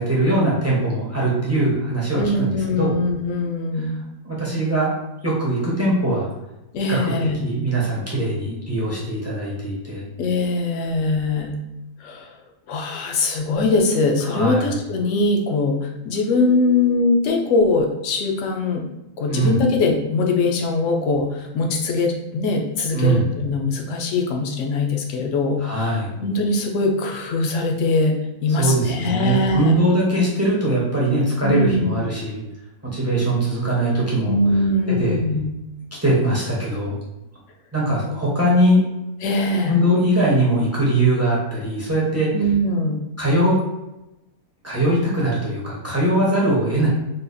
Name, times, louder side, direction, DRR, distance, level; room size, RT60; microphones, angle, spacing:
voice 1, 0.0-2.9 4.2-4.9 5.2-6.3 6.9-7.1 7.4-10.0 14.2-14.7 19.3-19.6 22.9-23.2 25.6-26.1 28.6-32.4 32.9-34.3 35.0-35.2 36.0-37.0 37.7-38.8 39.7-42.3 43.2-43.6 44.6-46.9, right 1 dB, 20° right, -6 dB, 0.5 m, -21 dB
voice 2, 2.2-4.0 6.7-7.4 10.2-11.6 12.0-12.3 12.7-18.8 19.2-25.9 26.2-29.8 31.4-32.0 34.3-35.5 39.2-39.8 42.3-43.0, left 2 dB, 65° left, 2 dB, 0.9 m, -21 dB
3.8 x 2.4 x 2.5 m, 0.96 s
omnidirectional pair, 1.6 m